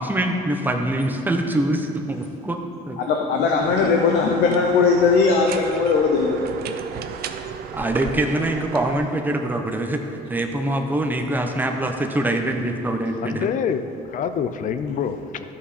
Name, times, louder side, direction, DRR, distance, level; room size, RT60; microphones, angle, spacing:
voice 1, 0.0-2.6 2.9-3.0 7.7-10.0 10.3-13.5, right 1 dB, 10° right, 4 dB, 0.9 m, -24 dB
voice 2, 3.0-6.5, left 4 dB, 80° left, 1 dB, 0.8 m, -19 dB
sound 1, 3.6-9.0, right 7 dB, 70° right, 0.6 m, -34 dB
voice 3, 13.2-15.5, left 7 dB, 50° left, 11 dB, 0.5 m, -26 dB
13.0 x 5.6 x 4.3 m, 2.6 s
cardioid pair, 110°, 17 cm